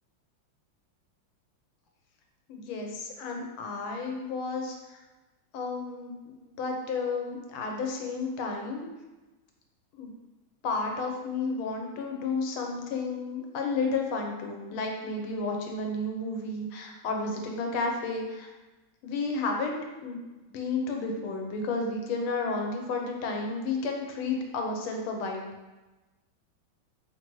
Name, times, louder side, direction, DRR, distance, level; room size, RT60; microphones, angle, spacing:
voice 1, 2.5-4.8 5.5-6.1 6.6-8.9 10.0-10.1 10.6-18.5 19.0-19.8 20.0-20.2 20.5-25.5, left 3 dB, 90° left, 2 dB, 1.6 m, -32 dB
5.6 x 2.6 x 3.0 m, 1.1 s
omnidirectional pair, 2.2 m